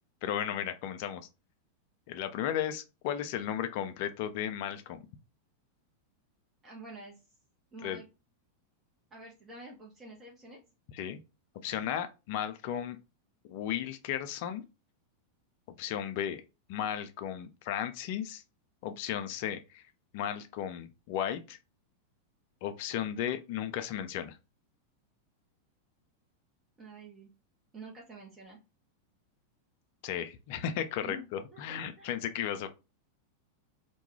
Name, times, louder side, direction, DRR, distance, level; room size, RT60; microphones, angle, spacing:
voice 1, 0.2-1.3 2.1-5.0 7.8-8.0 10.9-11.2 11.6-13.0 13.5-14.6 15.8-16.4 16.7-18.4 18.8-19.8 20.1-21.6 22.6-24.4 30.0-32.7, left 10 dB, 50° left, 0.4 m, -35 dB
voice 2, 6.6-7.2 7.7-8.1 9.1-10.6 26.8-27.3 27.7-28.6 31.0-32.1, right 2 dB, 20° right, 0.8 m, -48 dB
2.3 x 2.2 x 3.0 m
figure-of-eight pair, 90°, 0 cm